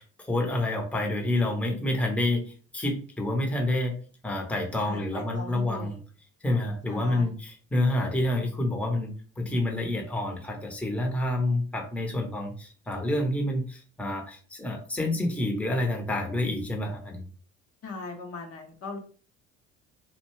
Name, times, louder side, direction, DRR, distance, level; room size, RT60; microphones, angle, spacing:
voice 1, 0.0-2.4 2.7-3.9 4.2-6.0 6.4-17.3, left 1 dB, 5° left, 1 dB, 0.8 m, -28 dB
voice 2, 4.9-6.0 6.9-7.3 17.8-19.0, left 3 dB, 40° left, 2 dB, 0.7 m, -39 dB
2.5 x 2.2 x 3.0 m, 0.42 s
hypercardioid pair, 65°, 36 cm